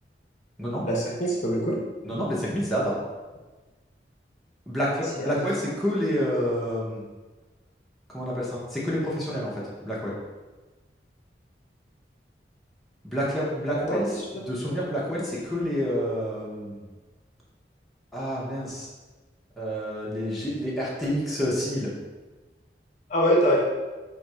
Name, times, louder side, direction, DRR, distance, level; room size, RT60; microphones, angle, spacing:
voice 1, 0.8-1.8 5.2-5.5 13.7-14.0 23.1-23.6, equal, 40° left, -3 dB, 0.6 m, -24 dB
voice 2, 2.0-3.0 4.7-7.0 8.1-10.2 13.0-16.8 18.1-18.9 19.6-21.9, equal, ahead, -8 dB, 0.6 m, -28 dB
2.6 x 2.4 x 4.2 m, 1.2 s
head